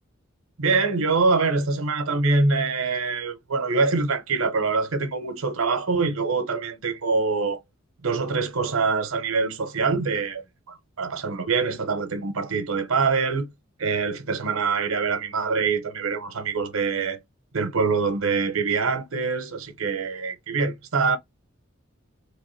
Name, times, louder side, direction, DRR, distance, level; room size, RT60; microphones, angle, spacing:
voice 1, 0.6-7.6 8.0-13.5 13.8-17.2 17.5-21.2, right 4 dB, 90° right, 0.9 m, -24 dB
3.4 x 3.1 x 3.1 m
head